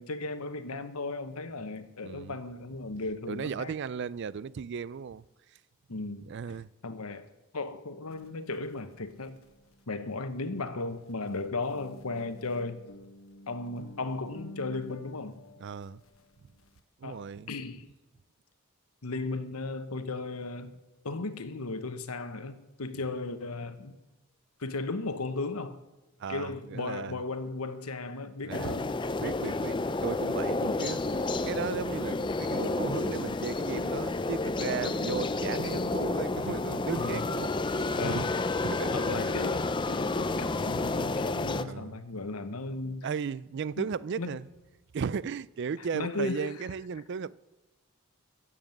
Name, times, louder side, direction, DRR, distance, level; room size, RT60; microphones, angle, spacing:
voice 1, 0.0-3.7 5.9-6.3 6.8-7.3 7.5-9.4 9.9-12.8 13.5-15.4 17.0-17.8 19.0-20.8 21.0-24.0 24.6-25.8 26.3-28.9 30.6-30.8 37.0-37.3 38.0-38.5 38.9-43.1 43.8-43.9 44.2-44.4 45.9-46.5, left 3 dB, 85° left, 1.1 m, -36 dB
voice 2, 2.0-2.4 3.3-5.2 6.3-6.7 15.6-16.0 17.0-17.5 26.2-27.2 28.4-28.8 29.2-29.7 30.0-38.3 38.6-39.1 41.6-42.0 42.8-44.5 44.9-47.3, right 6 dB, 50° right, 0.3 m, -36 dB
sound 1, 8.1-10.7 11.0-16.8, equal, 65° left, 1.3 m, -52 dB
sound 2, 28.5-41.6, left 3 dB, 20° left, 0.5 m, -30 dB
14.5 x 7.5 x 7.9 m
head